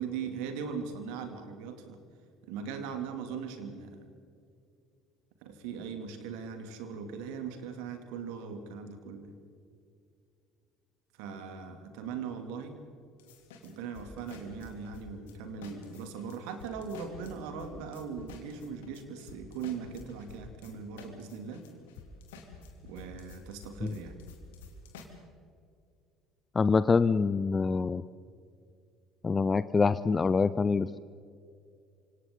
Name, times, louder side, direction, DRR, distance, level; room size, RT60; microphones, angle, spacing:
voice 1, 0.0-2.0 2.5-4.0 5.4-9.3 11.2-12.8 13.6-21.6 22.8-24.2, right 6 dB, 60° right, 6 dB, 2.7 m, -39 dB
sound 1, 13.2-15.4 15.6-25.0, left 4 dB, 65° left, 3.0 m, -50 dB
voice 2, 26.6-28.0 29.2-31.0, left 4 dB, 25° left, 15 dB, 0.5 m, -25 dB
28.5 x 26.5 x 3.9 m, 2.4 s
figure-of-eight pair, 60°, 0 cm